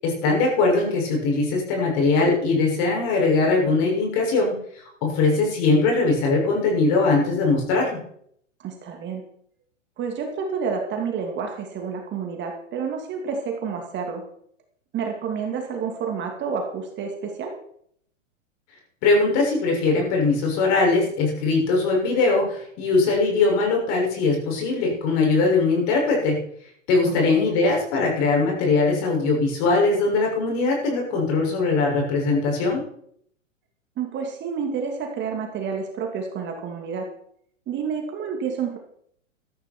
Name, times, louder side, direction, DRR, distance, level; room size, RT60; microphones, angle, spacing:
voice 1, 0.0-4.5 5.0-8.0 19.0-26.4 26.9-32.8, left 3 dB, 40° left, 0 dB, 6.7 m, -21 dB
voice 2, 8.6-9.2 10.0-14.2 14.9-17.5 27.4-27.5 34.0-37.1 37.7-38.8, right 6 dB, 30° right, 2 dB, 2.8 m, -29 dB
14.0 x 13.0 x 4.6 m, 0.66 s
hypercardioid pair, 110°, 38 cm